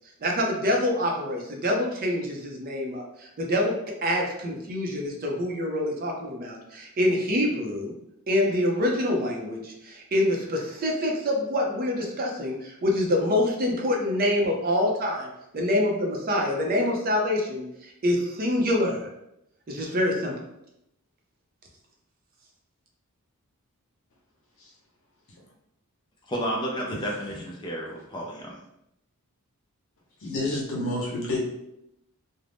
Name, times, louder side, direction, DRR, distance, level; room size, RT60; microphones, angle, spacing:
voice 1, 0.2-3.7 4.0-7.9 8.3-19.1 19.7-20.3, left 1 dB, 40° right, 0 dB, 0.5 m, -26 dB
voice 2, 26.3-28.5, equal, 20° left, -2 dB, 0.5 m, -31 dB
voice 3, 30.2-31.4, left 1 dB, 60° left, -3 dB, 0.8 m, -29 dB
2.5 x 2.0 x 3.3 m, 0.83 s
head